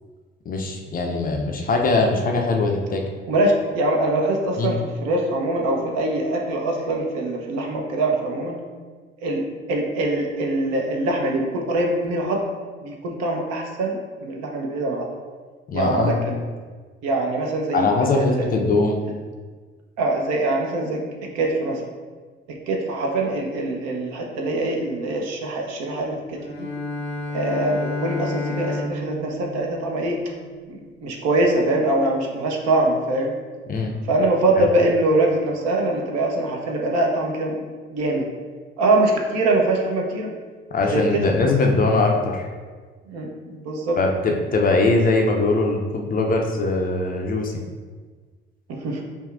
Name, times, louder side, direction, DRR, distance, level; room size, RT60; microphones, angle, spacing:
voice 1, 0.5-3.0 4.6-4.7 15.7-16.2 17.7-19.0 33.7-33.9 34.6-34.7 40.7-42.5 44.0-47.5, left 3 dB, 30° left, 1 dB, 0.5 m, -21 dB
voice 2, 3.3-8.6 9.2-9.4 9.7-12.4 12.8-15.1 15.7-16.4 17.0-18.5 20.0-21.8 22.5-26.7 27.3-30.2 30.7-33.3 34.1-37.5 37.9-38.2 38.8-40.3 40.9-41.5 43.1-44.0 48.7-49.0, right 2 dB, 55° right, 1 dB, 0.7 m, -23 dB
Bowed string instrument, 26.4-30.5, left 2 dB, 80° left, 0.6 m, -31 dB
5.1 x 2.3 x 2.4 m, 1.5 s
figure-of-eight pair, 50°, 31 cm